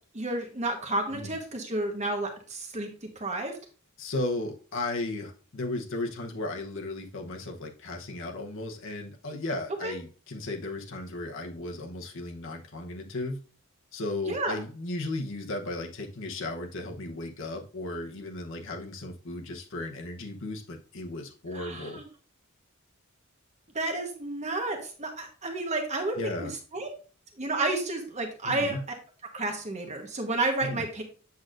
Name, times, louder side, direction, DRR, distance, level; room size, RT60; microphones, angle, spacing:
voice 1, 0.1-2.9 3.1-3.5 9.8-9.9 14.3-14.6 21.5-22.0 23.7-26.9 27.4-28.9 29.3-31.0, right 2 dB, 35° right, 3 dB, 1.2 m, -31 dB
voice 2, 4.0-13.4 13.9-22.0 26.2-26.5 28.4-28.8 30.6-30.8, left 2 dB, 60° left, 2 dB, 0.9 m, -35 dB
8.2 x 6.2 x 2.5 m, 0.38 s
head